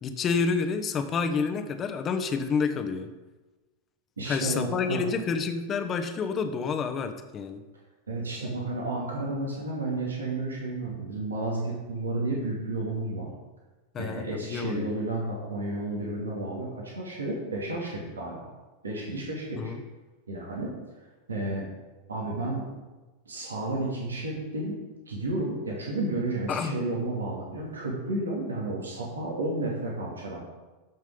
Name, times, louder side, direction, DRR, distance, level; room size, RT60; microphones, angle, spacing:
voice 1, 0.0-3.1 4.3-7.6 13.9-14.9 19.6-19.8 26.5-26.7, left 5 dB, 30° left, 8 dB, 1.0 m, -29 dB
voice 2, 4.2-5.0 8.1-13.3 14.0-18.4 18.8-19.7 20.3-20.7 21.3-21.7 22.1-22.7 23.3-24.8 25.1-30.4, right 2 dB, 85° right, -3 dB, 2.4 m, -32 dB
13.5 x 6.1 x 3.9 m, 1.2 s
figure-of-eight pair, 90°, 0 cm